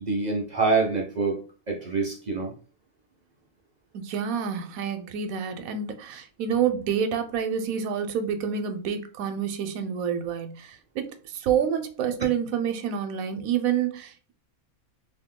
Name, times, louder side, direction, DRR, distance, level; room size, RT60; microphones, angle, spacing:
voice 1, 0.0-1.4 1.7-2.5, right 4 dB, 50° right, 0.5 m, -25 dB
voice 2, 3.9-14.3, right 8 dB, 80° right, 1.0 m, -28 dB
2.9 x 2.7 x 3.6 m
omnidirectional pair, 1.5 m